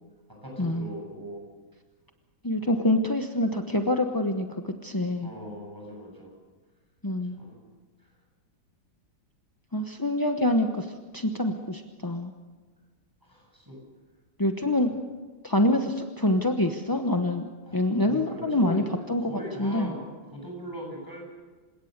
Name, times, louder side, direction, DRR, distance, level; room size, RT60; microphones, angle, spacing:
voice 1, 0.3-1.4 2.6-2.8 5.2-6.3 7.4-7.6 13.2-13.8 14.9-15.0 17.7-18.8 19.2-20.1 20.3-21.2, equal, 10° right, -1 dB, 7.7 m, -40 dB
voice 2, 2.4-5.3 7.0-7.3 9.7-12.3 14.4-14.9 15.4-18.8 19.1-19.9, left 1 dB, 20° left, 4 dB, 0.6 m, -26 dB
28.0 x 17.5 x 6.7 m, 1.4 s
omnidirectional pair, 2.0 m